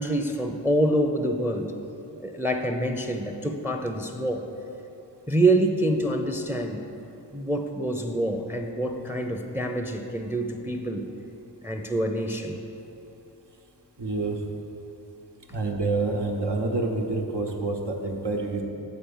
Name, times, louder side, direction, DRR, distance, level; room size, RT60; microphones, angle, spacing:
voice 1, 0.0-1.7 2.2-4.5 5.3-6.9 7.3-11.1 11.6-12.6, right 1 dB, 5° right, 5 dB, 0.5 m, -26 dB
voice 2, 14.0-14.4 15.5-18.6, right 3 dB, 80° right, 1 dB, 1.0 m, -27 dB
9.0 x 4.2 x 7.1 m, 2.9 s
wide cardioid pair, 60°, 41 cm